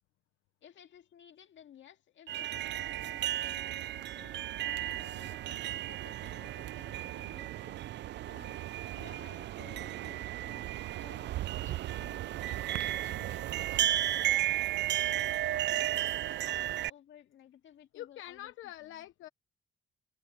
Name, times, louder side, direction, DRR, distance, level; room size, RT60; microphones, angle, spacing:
voice 1, 0.6-7.9 8.2-8.6 8.9-10.7 11.0-19.1, left 10 dB, 70° left, 2.2 m, -57 dB
sound 1, 2.3-16.9, right 14 dB, 65° right, 0.4 m, -34 dB
voice 2, 17.9-19.3, left 13 dB, 85° left, 0.9 m, -45 dB
cardioid pair, 90°, 20 cm